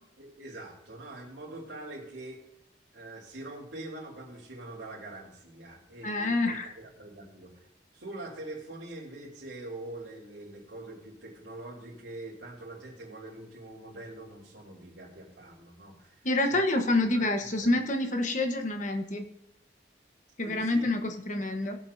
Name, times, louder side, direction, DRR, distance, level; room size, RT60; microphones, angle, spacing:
voice 1, 0.2-2.4 2.9-7.5 7.9-16.6 17.1-17.8 20.4-20.9, right 2 dB, 80° right, -5 dB, 3.2 m, -44 dB
voice 2, 6.0-6.7 16.2-19.2 20.4-21.8, left 2 dB, 45° left, 5 dB, 1.2 m, -27 dB
19.5 x 7.5 x 2.7 m, 0.84 s
head